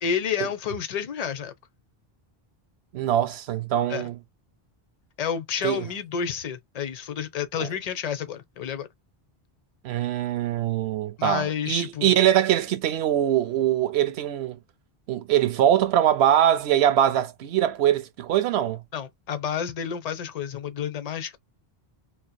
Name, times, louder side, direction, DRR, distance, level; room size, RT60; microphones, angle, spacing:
voice 1, 0.0-1.5 3.9-4.1 5.2-8.9 11.2-12.2 18.9-21.4, left 7 dB, 45° left, 0.6 m, -30 dB
voice 2, 2.9-4.2 5.6-5.8 7.6-7.7 9.8-14.6 15.1-18.8, right 11 dB, 90° right, 0.8 m, -22 dB
2.7 x 2.0 x 2.2 m
omnidirectional pair, 1.1 m